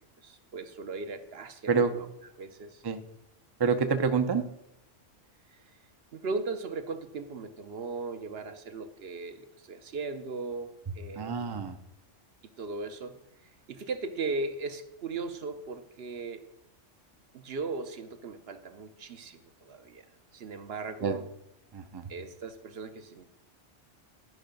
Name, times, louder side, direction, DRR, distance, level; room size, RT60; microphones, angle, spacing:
voice 1, 0.2-2.1 2.4-2.8 5.5-5.6 6.1-11.7 12.6-13.2 13.7-16.4 17.3-20.0 20.3-21.3 22.1-23.2, right 3 dB, 60° right, 9 dB, 0.9 m, -38 dB
voice 2, 3.6-4.4 11.2-11.8 21.0-21.2 21.7-22.0, right 5 dB, 30° right, 8 dB, 0.4 m, -27 dB
11.0 x 5.6 x 5.2 m, 0.83 s
omnidirectional pair, 1.3 m